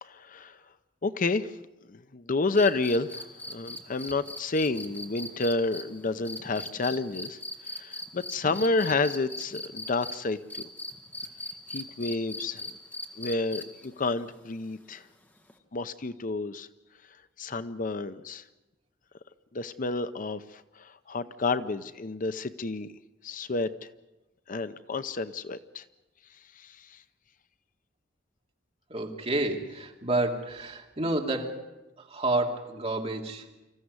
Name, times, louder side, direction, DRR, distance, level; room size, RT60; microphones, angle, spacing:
voice 1, 0.0-0.6 1.0-1.5 1.9-7.4 7.7-10.6 11.7-12.7 13.2-15.0 15.7-16.7 17.4-18.4 19.5-22.9 23.2-23.7 24.5-25.8 26.6-27.0, left 3 dB, 45° left, 12 dB, 0.7 m, -30 dB
sound 1, 2.6-10.2 10.5-13.9 15.5-15.6, left 1 dB, 10° left, 2.0 m, -39 dB
voice 2, 28.9-31.7 32.0-33.5, right 2 dB, 35° right, 1 dB, 2.7 m, -30 dB
26.0 x 15.0 x 9.6 m, 1.0 s
head